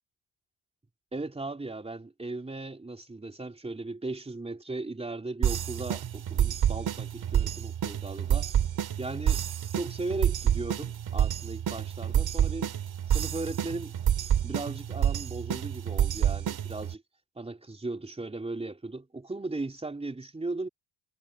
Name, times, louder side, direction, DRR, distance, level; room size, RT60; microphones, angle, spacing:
voice 1, 1.1-8.5 9.0-9.4 9.7-12.7 13.1-14.0 14.4-17.0 17.4-20.7, right 2 dB, 15° right, 3.6 m, -37 dB
sound 1, 5.4-16.9, right 10 dB, 60° right, 4.0 m, -28 dB
cardioid pair, 105°, 41 cm